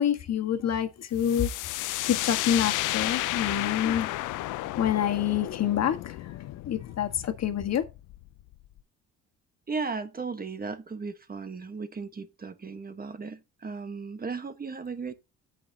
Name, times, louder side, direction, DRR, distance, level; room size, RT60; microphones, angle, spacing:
voice 1, 0.0-1.5 1.8-4.1 4.8-7.8, left 9 dB, 60° left, 1.6 m, -27 dB
sound 1, 1.2-8.8, left 17 dB, 90° left, 0.6 m, -33 dB
voice 2, 9.7-15.1, right 4 dB, 30° right, 1.3 m, -36 dB
16.0 x 5.7 x 2.8 m
cardioid pair, 90°, 30 cm